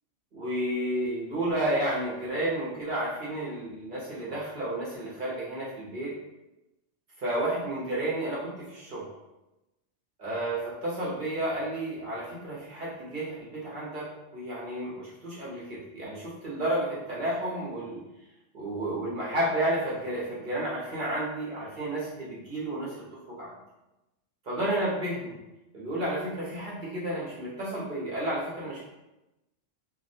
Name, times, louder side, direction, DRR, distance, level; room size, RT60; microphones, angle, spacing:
voice 1, 0.3-6.1 7.2-9.0 10.2-14.1 14.3-18.0 18.5-22.9 23.3-23.5 24.5-25.4 25.7-28.8, right 1 dB, 50° right, -7 dB, 0.7 m, -31 dB
2.3 x 2.0 x 2.6 m, 0.99 s
omnidirectional pair, 1.3 m